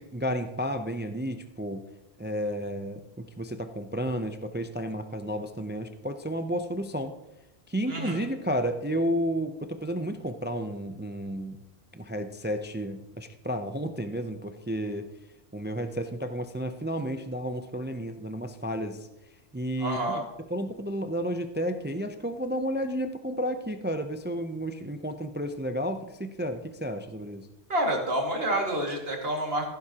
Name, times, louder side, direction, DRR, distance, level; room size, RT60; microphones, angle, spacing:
voice 1, 0.0-1.8 2.2-7.1 7.7-11.6 11.9-15.1 15.5-19.1 19.5-20.2 20.5-27.5, equal, 15° right, 8 dB, 0.4 m, -32 dB
voice 2, 7.9-8.3 19.8-20.2 27.7-29.7, right 1 dB, 65° right, 0 dB, 2.4 m, -28 dB
15.0 x 11.5 x 2.9 m, 0.95 s
omnidirectional pair, 1.1 m